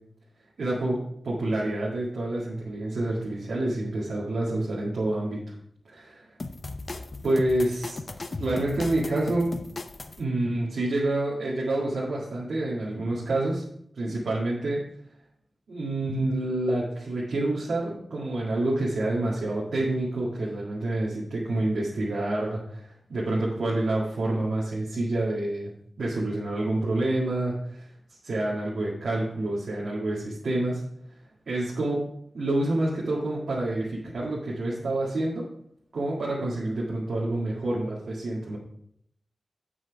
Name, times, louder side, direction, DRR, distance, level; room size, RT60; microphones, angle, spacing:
voice 1, 0.6-5.5 5.9-6.3 7.2-8.0 8.4-9.5 10.2-13.6 13.9-14.8 15.7-25.7 26.0-27.9 28.2-30.8 31.5-32.0 32.3-35.5 35.9-38.6, right 2 dB, 75° right, -5 dB, 1.9 m, -28 dB
sound 1, 6.4-10.2, left 2 dB, 35° left, 0.5 m, -37 dB
8.3 x 6.1 x 4.8 m, 0.70 s
wide cardioid pair, 145°, 0 cm